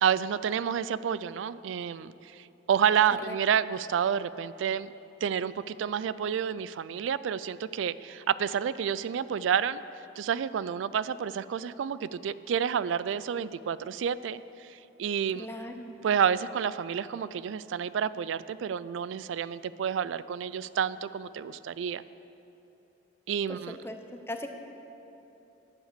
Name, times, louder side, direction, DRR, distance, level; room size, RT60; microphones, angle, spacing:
voice 1, 0.0-4.9 5.2-9.8 10.2-15.5 16.0-22.0 23.3-23.8, right 8 dB, 85° right, 16 dB, 0.3 m, -29 dB
voice 2, 15.3-16.0 23.5-23.6 23.8-24.5, left 1 dB, 15° left, 5 dB, 0.7 m, -39 dB
10.0 x 8.9 x 6.6 m, 3.0 s
head